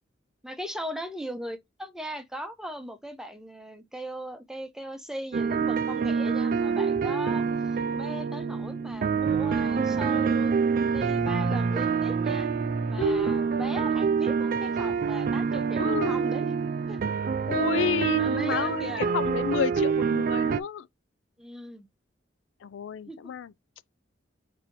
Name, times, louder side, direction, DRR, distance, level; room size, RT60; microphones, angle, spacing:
voice 1, 0.4-10.6 10.9-12.5 12.9-16.5 16.9-17.0 18.1-19.1 21.4-21.9 23.1-23.2, equal, 5° right, 0.6 m, -39 dB
sound 1, 5.3-20.6, right 6 dB, 50° right, 0.3 m, -26 dB
voice 2, 13.0-13.4 15.8-16.2 17.5-20.9 22.6-23.5, left 7 dB, 80° left, 0.3 m, -31 dB
4.0 x 2.8 x 4.3 m
head